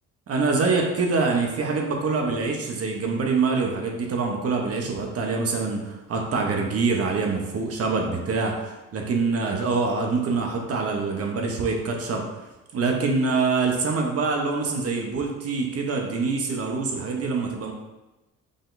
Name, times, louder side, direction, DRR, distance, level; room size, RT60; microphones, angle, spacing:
voice 1, 0.3-12.2 12.7-17.7, right 4 dB, 50° right, 1 dB, 0.9 m, -25 dB
5.1 x 3.8 x 2.6 m, 1.0 s
cardioid pair, 90°, 30 cm